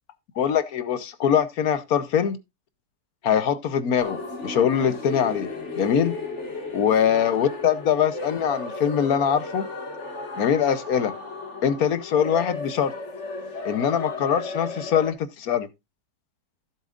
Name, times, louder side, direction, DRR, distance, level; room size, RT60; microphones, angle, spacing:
voice 1, 0.4-2.4 3.2-4.2 4.4-5.5 5.8-6.2 6.7-9.7 10.4-11.1 11.6-12.9 13.6-15.7, left 8 dB, 65° left, 1.2 m, -23 dB
sound 1, 4.0-15.1, left 2 dB, 45° left, 2.0 m, -34 dB
15.5 x 7.3 x 2.4 m
omnidirectional pair, 1.8 m